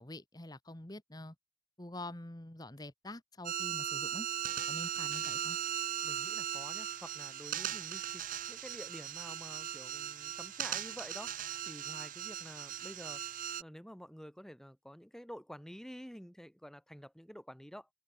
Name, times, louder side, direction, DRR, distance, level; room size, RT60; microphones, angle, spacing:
voice 1, 0.0-1.3 1.8-4.3 4.7-5.6, left 1 dB, 20° left, 1.5 m, -46 dB
sound 1, 3.4-13.6, right 10 dB, 45° right, 0.6 m, -38 dB
voice 2, 6.0-11.3 11.6-13.2 13.6-17.9, equal, 5° left, 1.6 m, -50 dB
head